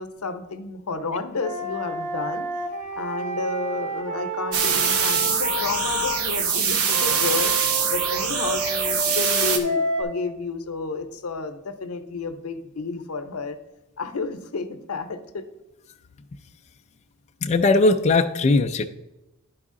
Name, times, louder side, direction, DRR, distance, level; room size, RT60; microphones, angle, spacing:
voice 1, 0.0-2.5 3.0-7.5 7.9-13.6 14.0-15.4, left 3 dB, 85° left, 9 dB, 0.7 m, -31 dB
Wind instrument woodwind instrument, 1.4-6.2 6.9-10.0, right 1 dB, 35° right, 1.5 m, -30 dB
sound 1, 4.5-9.6, right 6 dB, 75° right, 0.8 m, -23 dB
voice 2, 17.4-18.9, left 3 dB, 30° left, 4 dB, 0.3 m, -19 dB
11.0 x 4.8 x 3.7 m, 0.96 s
head